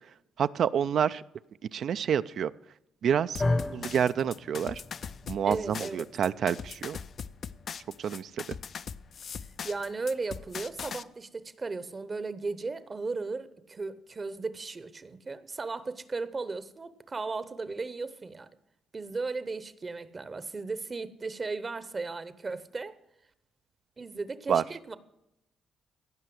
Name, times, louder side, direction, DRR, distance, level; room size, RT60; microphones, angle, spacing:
voice 1, 0.4-1.2 1.7-2.5 3.0-3.4 3.7-4.8 5.3-7.0 8.0-8.4 24.5-24.6, right 8 dB, 65° right, 0.4 m, -28 dB
sound 1, 3.3-11.0, left 6 dB, 55° left, 0.5 m, -40 dB
sound 2, 3.4-11.6, left 2 dB, 25° left, 0.8 m, -38 dB
voice 2, 5.4-6.1 9.6-18.5 18.9-23.0 24.0-25.0, right 3 dB, 30° right, 0.8 m, -36 dB
16.5 x 5.6 x 7.8 m
cardioid pair, 90°, 0 cm